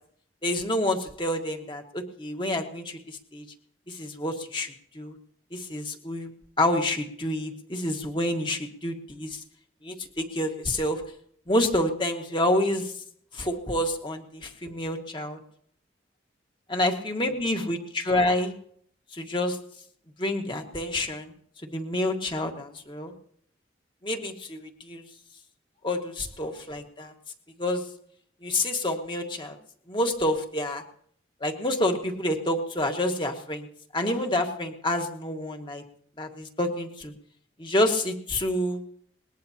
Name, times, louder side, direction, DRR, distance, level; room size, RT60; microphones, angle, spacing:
voice 1, 0.4-3.5 3.9-5.2 5.5-6.3 6.6-9.4 9.8-11.1 11.5-12.9 13.3-15.4 16.7-18.5 19.1-19.6 20.2-21.3 21.7-23.1 24.0-25.0 25.8-27.1 27.6-27.8 28.4-29.6 29.9-30.8 31.4-33.7 33.9-35.8 36.2-37.1 37.6-38.8, left 1 dB, 25° left, 4 dB, 1.8 m, -28 dB
20.5 x 20.0 x 2.9 m, 0.63 s
head